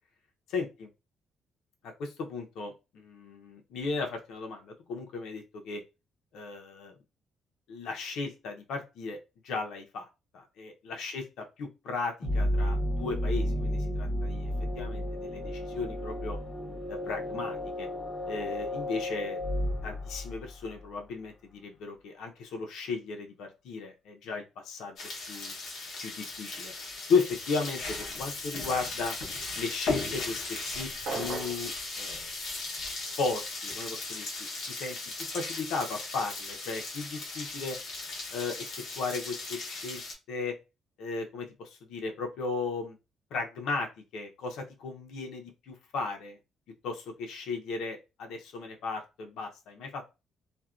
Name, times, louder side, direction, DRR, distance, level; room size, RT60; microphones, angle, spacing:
voice 1, 0.5-0.9 1.8-5.8 6.3-6.9 7.7-9.2 9.4-10.1 10.3-14.5 14.8-16.4 16.9-17.9 18.3-25.0 25.3-25.5 26.0-26.7 27.1-29.2 29.6-30.4 30.7-32.3 33.2-35.0 35.3-37.8 38.3-38.7 39.0-40.0 40.3-40.6 41.0-43.0 43.3-46.4 46.8-50.0, left 4 dB, 80° left, 2 dB, 0.6 m, -35 dB
sound 1, 12.2-20.9, left 1 dB, 25° left, 0.7 m, -32 dB
sound 2, 25.0-40.1, left 3 dB, 55° left, 0.8 m, -37 dB
sound 3, 31.1-31.7, right 4 dB, 60° right, 0.6 m, -35 dB
2.5 x 2.1 x 2.3 m, 0.27 s
cardioid pair, 160°, 0 cm